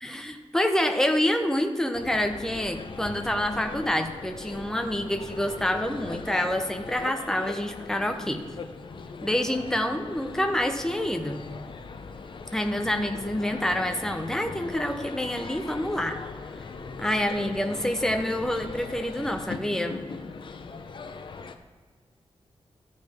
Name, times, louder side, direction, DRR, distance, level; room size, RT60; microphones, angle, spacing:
voice 1, 0.0-8.4 9.2-11.5 12.5-16.2 17.0-20.0, left 1 dB, 5° left, 5 dB, 0.7 m, -27 dB
sound 1, 1.9-21.6, left 4 dB, 50° left, 0.6 m, -40 dB
13.0 x 5.3 x 3.5 m, 1.5 s
wide cardioid pair, 140°, 11 cm